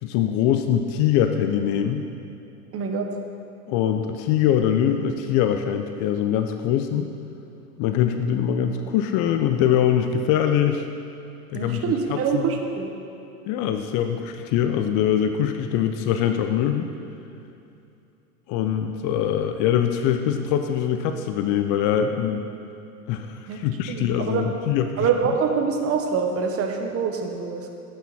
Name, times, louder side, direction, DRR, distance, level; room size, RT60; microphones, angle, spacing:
voice 1, 0.0-2.1 3.7-7.1 7.8-10.8 11.5-12.5 13.5-16.9 18.5-22.5 23.1-25.1, left 9 dB, 40° left, 7 dB, 0.7 m, -23 dB
voice 2, 2.7-3.1 11.5-12.9 23.5-23.6 23.9-24.5 25.0-27.7, right 6 dB, 30° right, 4 dB, 1.3 m, -25 dB
11.5 x 8.8 x 4.3 m, 2.7 s
hypercardioid pair, 105°, 46 cm